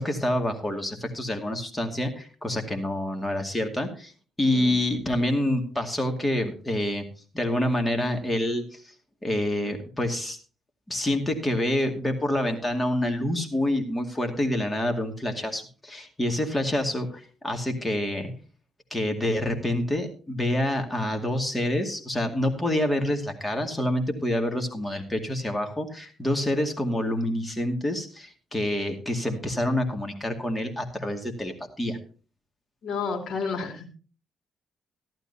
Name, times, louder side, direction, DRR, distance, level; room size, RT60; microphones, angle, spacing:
voice 1, 0.0-4.1 4.4-7.1 7.3-8.8 9.2-10.4 10.9-18.3 18.9-32.0, left 1 dB, 15° left, 4 dB, 2.3 m, -27 dB
voice 2, 32.8-33.9, left 5 dB, 65° left, 5 dB, 2.7 m, -31 dB
14.5 x 12.0 x 2.8 m, 0.37 s
cardioid pair, 90°, 0 cm